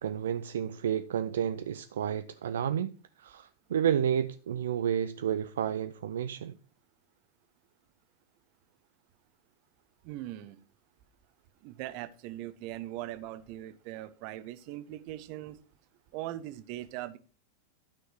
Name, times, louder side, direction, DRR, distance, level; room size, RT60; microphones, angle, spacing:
voice 1, 0.0-2.9 3.2-6.5, right 9 dB, 60° right, 0.5 m, -31 dB
voice 2, 10.0-10.6 11.6-15.6 16.1-17.2, right 14 dB, 45° right, 0.9 m, -40 dB
12.0 x 6.3 x 4.7 m
figure-of-eight pair, 90°, 0 cm